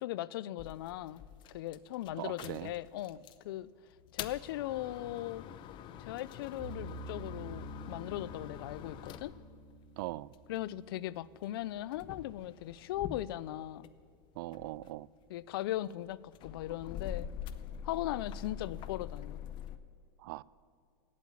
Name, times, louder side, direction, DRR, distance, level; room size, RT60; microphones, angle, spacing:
voice 1, 0.0-1.2 1.5-3.7 4.1-5.4 6.0-9.4 10.5-13.9 15.3-17.3 17.8-19.4, left 14 dB, 80° left, 0.5 m, -38 dB
sound 1, 0.6-3.5 3.9-10.7 11.4-14.1 14.4-19.8, left 9 dB, 40° left, 0.8 m, -46 dB
voice 2, 2.2-2.7 10.0-10.3 14.4-15.1 20.2-20.4, right 17 dB, 70° right, 0.4 m, -40 dB
sound 2, 6.6-11.7, right 1 dB, 10° right, 3.9 m, -48 dB
16.5 x 8.5 x 8.5 m
supercardioid pair, 135°, 12 cm